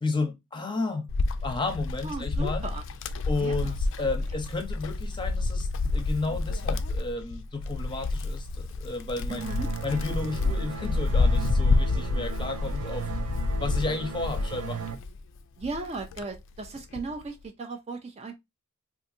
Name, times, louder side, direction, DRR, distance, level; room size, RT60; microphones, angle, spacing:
voice 1, 0.0-1.1 1.4-2.6 3.3-5.7 5.9-9.5 9.8-13.1 13.6-14.8, left 3 dB, 20° left, 0.7 m, -32 dB
Wind, 1.1-15.2 15.6-17.1, left 3 dB, 60° left, 0.3 m, -29 dB
voice 2, 2.0-2.8 3.4-4.1 9.3-9.7 15.6-18.4, right 3 dB, 30° right, 0.4 m, -37 dB
sound 1, 9.4-14.9, right 6 dB, 75° right, 0.6 m, -37 dB
3.8 x 2.6 x 2.5 m
head